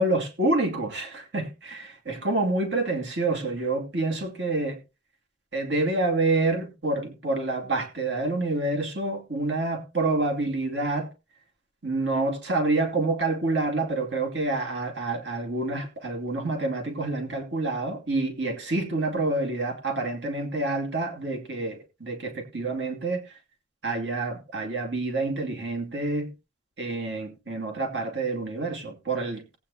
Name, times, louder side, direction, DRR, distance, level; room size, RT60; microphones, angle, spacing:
voice 1, 0.0-4.8 5.5-11.1 11.8-23.2 23.8-26.3 26.8-29.4, right 2 dB, 70° right, 2.5 m, -27 dB
18.5 x 8.8 x 2.8 m
head